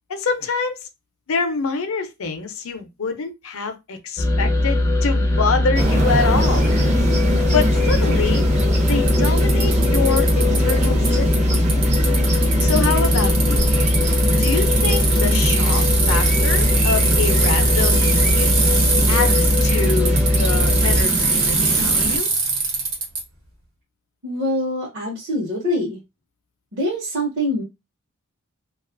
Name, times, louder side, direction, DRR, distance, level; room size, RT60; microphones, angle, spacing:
voice 1, 0.1-0.8 1.3-6.7 7.5-8.5 8.9-11.6 12.6-13.7 14.4-18.6 19.1-22.3, left 4 dB, 65° left, 0.5 m, -26 dB
sound 1, 4.2-21.0, left 2 dB, 15° left, 0.4 m, -19 dB
sound 2, 5.7-22.2, right 1 dB, 35° right, 0.5 m, -24 dB
Bicycle, 7.6-7.7 8.6-8.7 8.9-11.1 11.3-23.2, right 4 dB, 80° right, 1.1 m, -22 dB
voice 2, 24.2-26.0 26.7-27.6, equal, 55° right, 0.8 m, -24 dB
2.4 x 2.3 x 2.5 m
head